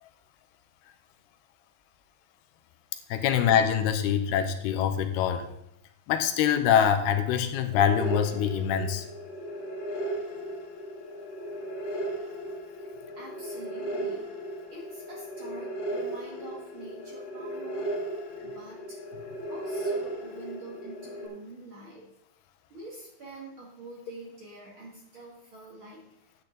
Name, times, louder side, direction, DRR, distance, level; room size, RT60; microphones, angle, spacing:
voice 1, 3.1-5.5 6.1-9.0, left 8 dB, 85° left, 8 dB, 2.7 m, -24 dB
sound 1, 7.7-21.3, right 1 dB, 60° left, 3.4 m, -36 dB
voice 2, 12.8-14.3 14.7-17.9 18.4-19.0 19.5-22.1 22.7-26.0, right 2 dB, 40° right, -4 dB, 2.1 m, -46 dB
10.5 x 8.6 x 4.0 m, 0.76 s
omnidirectional pair, 4.7 m